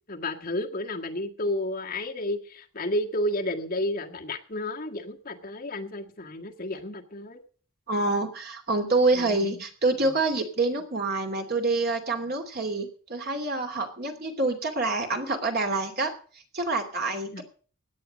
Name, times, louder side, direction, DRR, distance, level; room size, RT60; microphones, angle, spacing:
voice 1, 0.0-7.4 9.1-9.6 17.3-17.4, left 1 dB, 45° left, 2 dB, 1.8 m, -31 dB
voice 2, 7.9-16.1 16.5-17.4, right 2 dB, 50° right, 4 dB, 2.8 m, -27 dB
17.0 x 9.6 x 5.3 m, 0.42 s
head